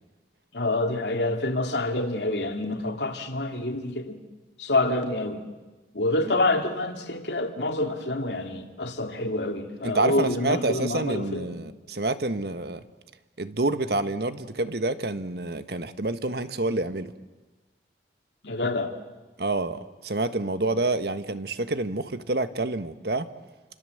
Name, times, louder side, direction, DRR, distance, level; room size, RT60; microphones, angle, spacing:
voice 1, 0.5-4.2 4.6-5.4 5.9-11.6 18.4-18.9, left 2 dB, 80° left, 2.6 m, -27 dB
voice 2, 9.8-12.8 13.4-17.1 19.4-23.3, right 2 dB, 65° right, 1.3 m, -28 dB
29.5 x 25.5 x 7.9 m
head